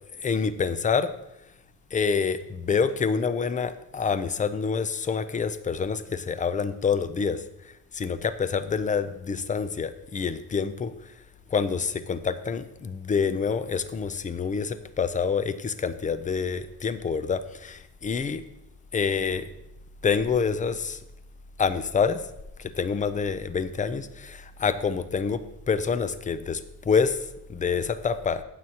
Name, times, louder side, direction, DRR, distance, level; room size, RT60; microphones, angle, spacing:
voice 1, 0.2-1.1 1.9-11.1 11.5-18.4 18.9-19.5 20.0-21.0 21.6-22.2 22.6-28.4, left 5 dB, 20° left, 13 dB, 0.4 m, -27 dB
15.5 x 7.6 x 2.8 m, 0.86 s
cardioid pair, 165°, 38 cm